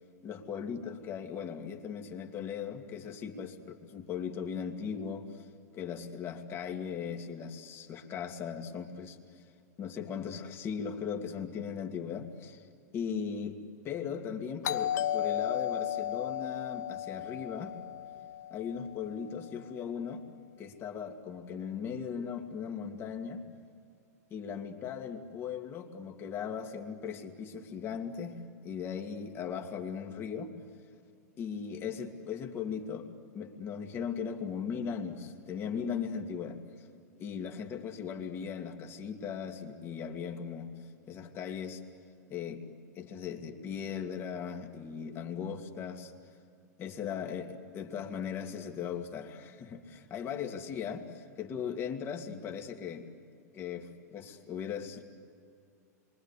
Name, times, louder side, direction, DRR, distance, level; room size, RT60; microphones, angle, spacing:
voice 1, 0.2-5.5 5.7-9.4 9.8-12.6 12.9-13.6 13.8-17.7 18.5-20.2 20.6-23.4 24.3-30.5 31.4-33.1 33.3-36.9 37.2-40.7 41.1-41.8 42.3-42.6 43.0-46.1 46.8-53.1 53.5-55.0, left 7 dB, 25° left, 2.6 m, -38 dB
Doorbell, 14.6-19.2, left 11 dB, 70° left, 1.1 m, -34 dB
27.5 x 24.5 x 8.4 m
hypercardioid pair, 140°, 9 cm